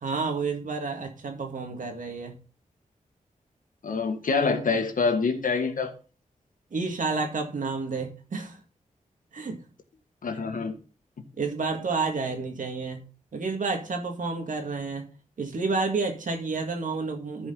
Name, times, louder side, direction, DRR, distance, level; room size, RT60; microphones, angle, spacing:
voice 1, 0.0-2.4 6.7-8.6 9.3-9.6 11.4-13.1 13.3-15.1 15.4-17.5, right 4 dB, 70° right, 2.0 m, -30 dB
voice 2, 3.8-5.9 10.2-10.7, left 4 dB, 75° left, 1.6 m, -26 dB
14.0 x 5.0 x 3.8 m
wide cardioid pair, 85°, 14 cm